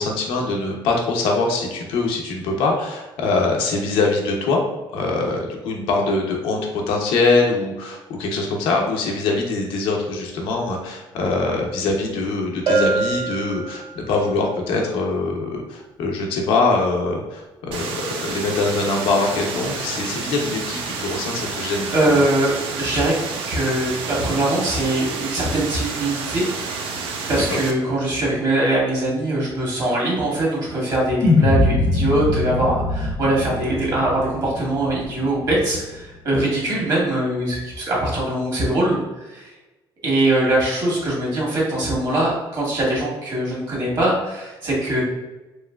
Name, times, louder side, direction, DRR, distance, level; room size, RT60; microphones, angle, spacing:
voice 1, 0.0-4.6 4.9-22.2 27.3-27.6, left 3 dB, 90° left, 1 dB, 0.6 m, -23 dB
Bell, 12.7-14.2, right 3 dB, 65° right, 0.9 m, -23 dB
sound 1, 17.7-27.7, right 4 dB, 90° right, 0.4 m, -30 dB
voice 2, 21.9-23.1 23.5-26.5 27.3-39.5 40.0-45.0, right 1 dB, 45° right, -5 dB, 1.4 m, -22 dB
sound 2, 31.2-35.6, left 2 dB, 35° left, 0.4 m, -22 dB
3.1 x 2.9 x 2.2 m, 1.1 s
cardioid pair, 115°, 9 cm